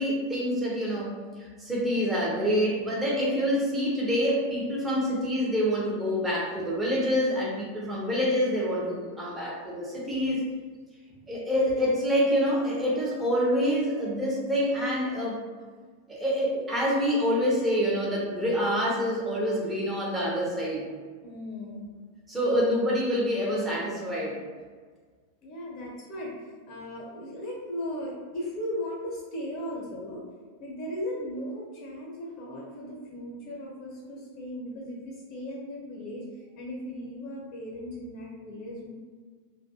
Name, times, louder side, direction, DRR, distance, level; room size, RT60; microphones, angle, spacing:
voice 1, 0.0-10.4 11.3-15.4 16.1-20.9 22.3-24.4, equal, 10° right, -5 dB, 0.8 m, -26 dB
voice 2, 21.2-21.9 25.4-30.2 30.6-36.2 36.6-38.9, left 1 dB, 40° left, -4 dB, 0.9 m, -37 dB
2.5 x 2.3 x 2.7 m, 1.5 s
figure-of-eight pair, 90°, 0 cm